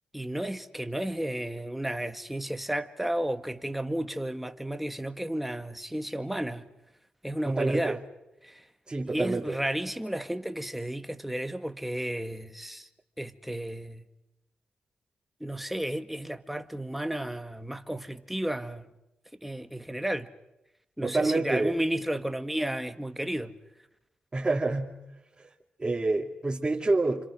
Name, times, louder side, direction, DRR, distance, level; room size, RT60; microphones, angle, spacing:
voice 1, 0.1-6.7 7.2-8.0 8.4-8.6 9.0-12.9 13.2-14.1 15.4-18.9 19.4-20.3 21.0-23.6, right 1 dB, 5° right, 1.9 m, -33 dB
voice 2, 7.5-8.0 8.9-9.5 21.0-21.7 24.3-24.9 25.4-25.5 25.8-27.2, right 2 dB, 30° right, 2.6 m, -27 dB
29.5 x 26.5 x 6.4 m
cardioid pair, 65°, 3 cm